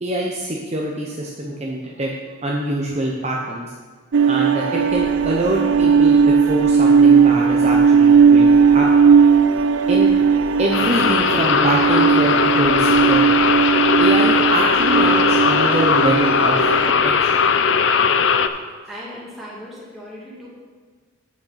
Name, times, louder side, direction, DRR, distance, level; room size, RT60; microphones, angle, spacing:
voice 1, 0.0-3.7 4.3-8.9 9.9-10.1 10.6-13.4 14.0-17.4, right 1 dB, 35° right, -2 dB, 0.8 m, -24 dB
sound 1, 4.1-16.9, right 6 dB, 65° right, 0.4 m, -16 dB
sound 2, 4.8-17.1 17.4-17.5, equal, 35° left, 1.1 m, -43 dB
sound 3, 10.7-18.5, left 6 dB, 60° left, 0.4 m, -18 dB
voice 2, 18.7-20.5, equal, ahead, -7 dB, 2.3 m, -37 dB
8.7 x 6.5 x 5.8 m, 1.5 s
head